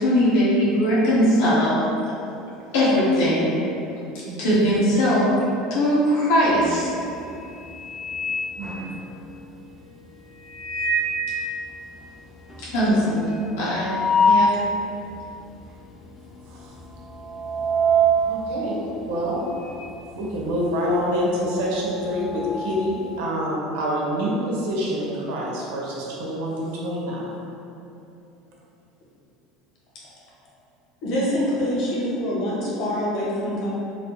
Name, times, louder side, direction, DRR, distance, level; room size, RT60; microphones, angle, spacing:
voice 1, 0.0-1.8 2.7-3.5 4.4-5.3 5.7-6.9 12.6-13.1 13.6-13.9 14.2-14.5, equal, 85° left, -8 dB, 1.2 m, -20 dB
voice 2, 4.3-4.7 8.6-8.9 12.8-13.4 16.4-16.7 18.2-19.4 20.2-27.3, equal, 75° right, -4 dB, 0.8 m, -27 dB
sound 1, 6.5-6.9 7.3-9.4 10.3-11.3 11.7-11.8 12.0-12.1 12.5-14.6 15.1-15.2 16.0-16.3 16.6-19.9 20.2-23.1, right 1 dB, 20° left, 0.4 m, -25 dB
voice 3, 31.0-33.7, equal, 45° left, -6 dB, 0.8 m, -25 dB
4.1 x 2.0 x 2.9 m, 2.8 s
cardioid pair, 175°, 0 cm